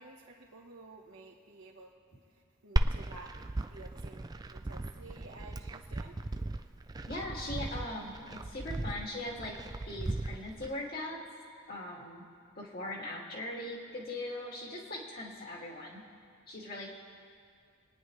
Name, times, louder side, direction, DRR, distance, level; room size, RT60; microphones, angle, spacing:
voice 1, 0.0-1.9 2.3-6.2, right 2 dB, 75° right, -5 dB, 1.3 m, -52 dB
Glass, 2.8-10.7, right 2 dB, 20° right, 0.4 m, -36 dB
voice 2, 7.1-8.2 8.4-9.5 9.9-11.2 11.7-12.2 12.6-16.0 16.5-16.9, left 1 dB, 45° left, -2 dB, 2.3 m, -40 dB
29.0 x 9.9 x 3.2 m, 2.3 s
head